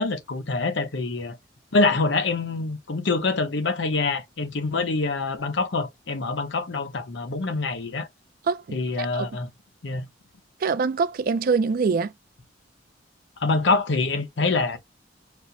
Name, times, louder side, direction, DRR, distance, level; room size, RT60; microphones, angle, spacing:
voice 1, 0.0-1.4 1.7-8.1 8.7-9.5 9.8-10.1 13.4-14.8, left 3 dB, 65° left, 0.7 m, -25 dB
voice 2, 8.5-9.3 10.6-12.1, right 5 dB, 50° right, 0.4 m, -24 dB
4.2 x 2.1 x 2.7 m
head